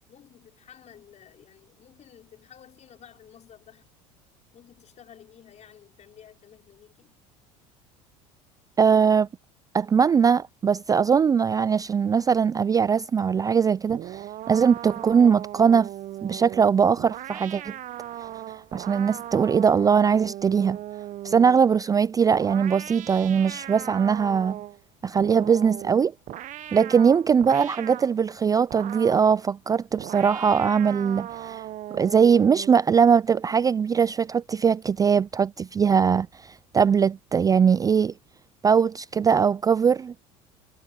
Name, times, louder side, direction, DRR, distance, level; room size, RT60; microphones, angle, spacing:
voice 1, 0.1-3.9 4.5-7.2, left 9 dB, 45° left, 5.3 m, -52 dB
voice 2, 8.8-9.3 9.7-15.9 16.2-17.7 18.7-20.8 21.2-24.6 25.0-26.1 26.7-31.6 31.9-38.1 38.6-40.1, right 6 dB, 20° right, 0.4 m, -21 dB
sound 1, 13.9-21.7 22.3-24.8 25.2-28.1 28.7-29.4 30.0-32.8, right 13 dB, 50° right, 1.0 m, -38 dB
hypercardioid pair, 85°, 17 cm